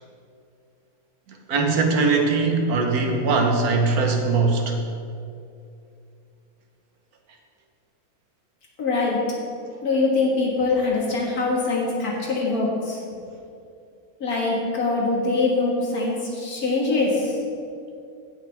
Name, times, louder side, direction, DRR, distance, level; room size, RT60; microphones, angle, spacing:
voice 1, 1.3-4.8, right 3 dB, 80° right, 2 dB, 1.6 m, -21 dB
voice 2, 8.8-9.2 9.8-13.0 14.2-17.4, left 3 dB, 80° left, -3 dB, 2.3 m, -23 dB
16.0 x 6.0 x 3.5 m, 2.5 s
omnidirectional pair, 1.6 m